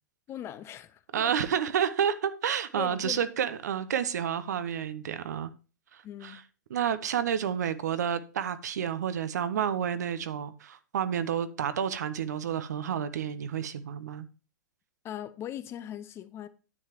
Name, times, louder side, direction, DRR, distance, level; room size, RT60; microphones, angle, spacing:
voice 1, 0.3-1.3 2.8-3.2 6.0-6.4 15.0-16.5, left 11 dB, 25° left, 0.6 m, -40 dB
voice 2, 1.1-5.5 5.9-6.4 6.7-14.3, right 8 dB, 65° right, 0.8 m, -30 dB
9.7 x 7.4 x 2.9 m
figure-of-eight pair, 105°, 10 cm